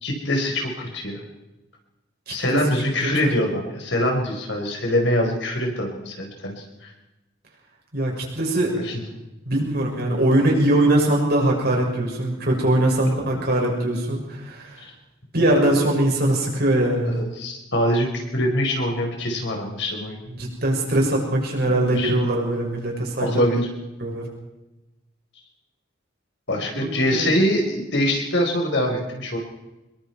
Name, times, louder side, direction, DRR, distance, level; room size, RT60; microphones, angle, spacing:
voice 1, 0.0-1.2 2.3-6.9 8.6-8.9 13.0-13.4 17.1-20.2 21.7-22.1 23.2-23.7 26.5-29.4, left 1 dB, 65° left, 1 dB, 4.7 m, -24 dB
voice 2, 2.3-2.6 3.2-3.3 7.9-8.7 9.5-14.8 15.3-17.1 20.3-23.4 24.0-24.3 26.7-27.3, right 1 dB, 50° right, -1 dB, 6.5 m, -22 dB
26.0 x 22.0 x 4.6 m, 1.0 s
head